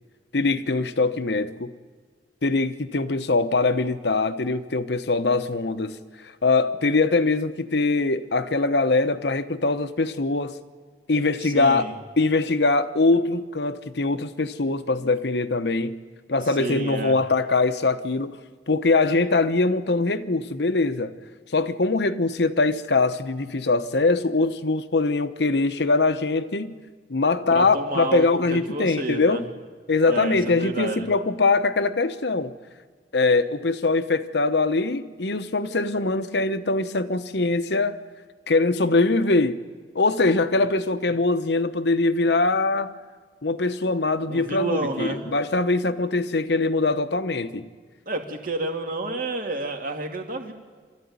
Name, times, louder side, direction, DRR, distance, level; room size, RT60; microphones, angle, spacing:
voice 1, 0.3-1.7 2.4-6.0 6.4-10.5 11.1-11.9 12.2-16.0 16.3-18.4 18.7-21.1 21.5-26.8 27.1-29.5 29.9-32.5 33.1-38.0 38.5-39.6 39.9-42.9 43.4-47.7, left 3 dB, 70° left, 1.0 m, -22 dB
voice 2, 11.4-11.9 16.4-17.2 27.5-29.4 30.1-31.1 40.5-40.7 44.3-45.2 48.1-50.5, right 2 dB, 50° right, 2.4 m, -30 dB
26.5 x 13.5 x 9.6 m
head